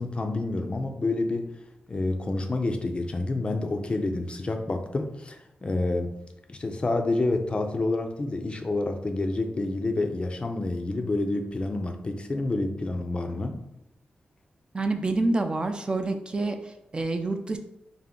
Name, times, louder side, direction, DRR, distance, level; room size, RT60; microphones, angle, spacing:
voice 1, 0.0-1.5 1.9-6.1 6.5-13.6, left 2 dB, 30° left, 5 dB, 0.4 m, -28 dB
voice 2, 14.7-16.6 16.9-17.6, right 2 dB, 30° right, 6 dB, 0.3 m, -27 dB
3.5 x 2.5 x 3.7 m, 0.86 s
wide cardioid pair, 110°, 3 cm